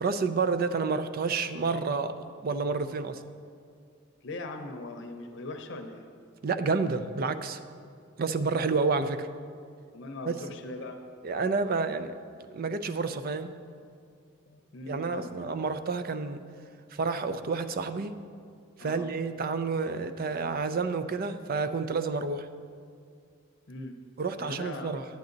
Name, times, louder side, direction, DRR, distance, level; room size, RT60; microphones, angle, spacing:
voice 1, 0.0-3.2 6.4-7.6 8.2-9.3 10.3-10.4 11.2-12.1 12.5-13.5 14.9-16.4 16.9-18.1 18.8-22.5 24.2-25.0, right 4 dB, 50° right, 10 dB, 0.4 m, -29 dB
voice 2, 4.2-6.0 9.9-11.0 14.5-15.3 18.8-19.0 23.7-23.9 24.4-24.9, left 2 dB, 65° left, 5 dB, 0.7 m, -40 dB
10.5 x 8.4 x 3.9 m, 2.3 s
head